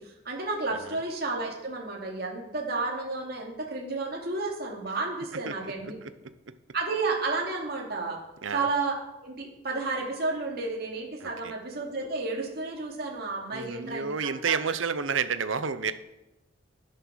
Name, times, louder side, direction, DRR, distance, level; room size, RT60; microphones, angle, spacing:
voice 1, 0.0-6.0 6.7-8.2 8.5-14.7, right 3 dB, 50° right, -1 dB, 2.7 m, -32 dB
voice 2, 5.3-5.7 6.0-6.1 6.5-6.6 8.4-8.7 11.2-11.5 13.5-15.9, right 6 dB, 75° right, 12 dB, 0.8 m, -30 dB
18.5 x 7.7 x 6.4 m, 0.95 s
head